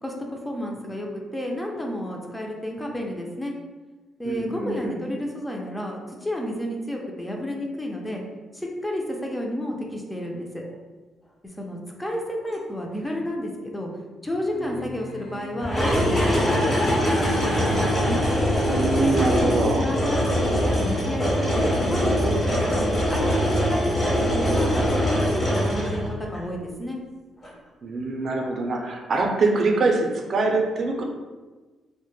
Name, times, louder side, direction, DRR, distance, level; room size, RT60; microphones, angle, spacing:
voice 1, 0.0-3.5 4.2-8.2 8.5-10.7 11.6-13.9 14.2-18.3 18.9-27.0, left 1 dB, 10° left, 0 dB, 0.4 m, -31 dB
voice 2, 4.2-5.0 18.7-19.8 27.8-31.0, right 3 dB, 50° right, 1 dB, 0.4 m, -24 dB
sound 1, 14.3-16.9, left 2 dB, 60° left, 1.0 m, -41 dB
sound 2, 15.6-26.4 27.4-27.5, equal, 30° left, 0.8 m, -23 dB
Bowed string instrument, 21.1-26.3, left 1 dB, 85° left, 0.7 m, -39 dB
2.1 x 2.0 x 3.1 m, 1.3 s
cardioid pair, 90°, 0 cm